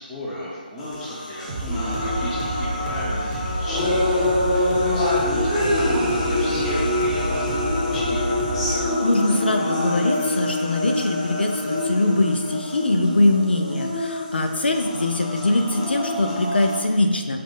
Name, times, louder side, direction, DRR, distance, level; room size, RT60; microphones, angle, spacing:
voice 1, 0.0-8.4, equal, 10° left, -6 dB, 0.7 m, -34 dB
sound 1, 0.8-16.8, left 1 dB, 30° left, 1.1 m, -25 dB
sound 2, 1.5-8.9, right 1 dB, 35° right, 0.8 m, -30 dB
voice 2, 8.7-17.4, left 2 dB, 80° left, 5 dB, 0.5 m, -22 dB
5.4 x 2.5 x 3.9 m, 1.5 s
figure-of-eight pair, 160°, 5 cm